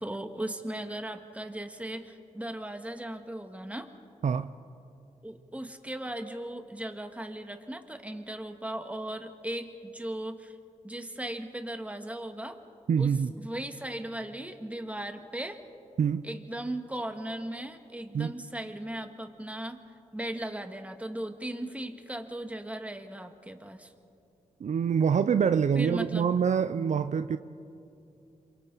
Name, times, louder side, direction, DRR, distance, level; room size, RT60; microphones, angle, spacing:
voice 1, 0.0-3.9 5.2-10.6 10.8-12.6 13.0-15.6 16.2-19.8 20.1-23.9 25.7-26.3, right 1 dB, 10° right, 6 dB, 2.0 m, -37 dB
voice 2, 12.9-13.3 16.0-16.2 18.1-18.3 24.6-27.4, right 7 dB, 55° right, 11 dB, 0.6 m, -25 dB
27.5 x 24.0 x 4.1 m, 2.6 s
supercardioid pair, 50°, 14 cm